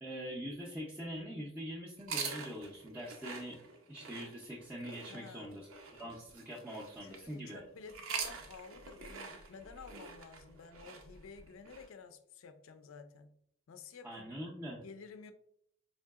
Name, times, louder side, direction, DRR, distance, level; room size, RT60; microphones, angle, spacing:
voice 1, 0.0-7.6 14.0-14.8, equal, 10° right, 0.5 m, -44 dB
sound 1, 2.0-7.3 7.8-11.9, right 5 dB, 80° right, 0.6 m, -45 dB
voice 2, 5.1-5.6 7.0-13.4 13.7-14.4 14.7-15.3, left 5 dB, 75° left, 0.4 m, -52 dB
4.6 x 2.7 x 2.3 m
head